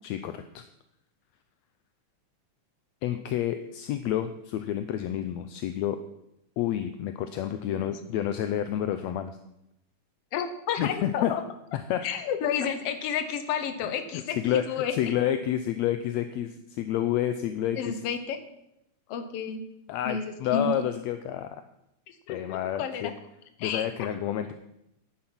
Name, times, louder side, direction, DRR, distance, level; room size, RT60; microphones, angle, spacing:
voice 1, 0.0-0.6 3.0-6.0 6.6-9.4 10.8-11.3 11.7-12.0 13.8-14.0 14.4-18.0 19.9-21.6 22.3-23.1 23.6-24.5, left 11 dB, 75° left, 9 dB, 1.7 m, -29 dB
voice 2, 7.7-8.1 10.3-11.4 12.0-15.0 17.8-18.4 19.1-19.6 20.0-20.7 22.1-23.1 23.6-23.9, left 7 dB, 60° left, 9 dB, 1.8 m, -31 dB
10.5 x 9.6 x 6.2 m, 0.82 s
omnidirectional pair, 3.5 m